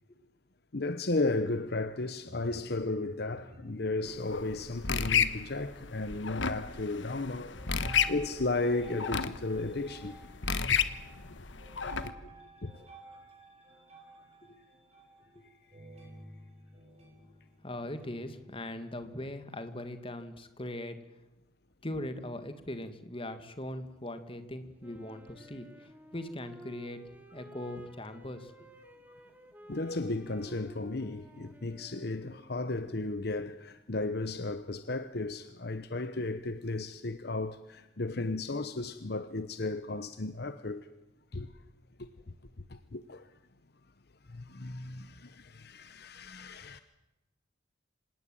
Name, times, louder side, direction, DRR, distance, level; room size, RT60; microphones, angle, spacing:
voice 1, 0.7-10.2 10.7-10.8 12.0-12.1 12.6-12.9 29.7-40.9 41.3-41.5 42.7-43.3 44.3-46.8, left 2 dB, 55° left, 0.9 m, -34 dB
sound 1, 2.3-6.1 6.4-7.0 7.5-18.9, right 2 dB, 35° right, 7.9 m, -54 dB
sound 2, 4.1-12.1, left 6 dB, 75° left, 1.3 m, -33 dB
voice 2, 17.6-21.0 21.8-27.0 27.3-28.7, left 1 dB, 30° left, 2.1 m, -40 dB
Wind instrument woodwind instrument, 24.8-32.8, equal, 10° right, 2.5 m, -54 dB
26.0 x 18.5 x 9.1 m
head